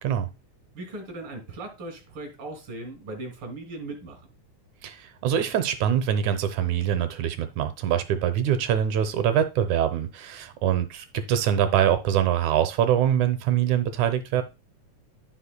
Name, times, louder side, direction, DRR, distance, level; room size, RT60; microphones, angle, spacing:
voice 1, 0.7-4.2, right 2 dB, 45° right, 3.4 m, -38 dB
voice 2, 4.8-14.4, right 10 dB, 80° right, 2.3 m, -24 dB
14.5 x 5.2 x 2.2 m
omnidirectional pair, 3.5 m